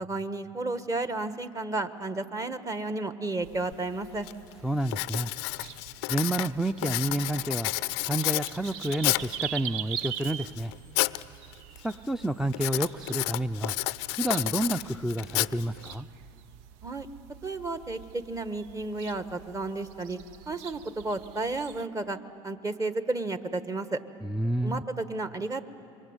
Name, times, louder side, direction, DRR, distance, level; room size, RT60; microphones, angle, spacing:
voice 1, 0.0-4.3 16.8-17.1 17.4-20.2 20.5-22.2 22.4-24.0 24.6-25.7, right 2 dB, 25° right, 11 dB, 1.5 m, -32 dB
sound 1, 3.4-21.9, right 10 dB, 70° right, 0.7 m, -44 dB
Writing, 3.7-3.8 4.3-4.5 4.9-9.4 10.0-11.2 11.5-11.9 12.5-15.9, left 22 dB, 75° left, 0.5 m, -31 dB
voice 2, 4.6-5.3 6.1-7.7 8.0-10.7 11.8-13.7 14.1-16.1 24.2-24.8, right 1 dB, 5° right, 10 dB, 0.6 m, -29 dB
27.0 x 23.5 x 8.2 m, 2.6 s
hypercardioid pair, 85°, 14 cm